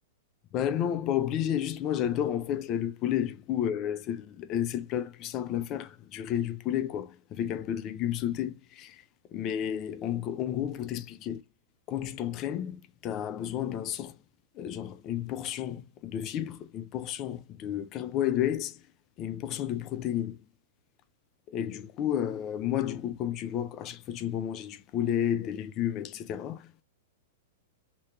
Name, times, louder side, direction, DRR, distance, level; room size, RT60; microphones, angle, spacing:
voice 1, 0.5-9.0 9.3-11.4 11.9-14.2 14.5-18.8 19.2-20.4 21.5-26.8, left 10 dB, 35° left, 0.6 m, -31 dB
3.1 x 3.0 x 3.2 m
hypercardioid pair, 130°, 0 cm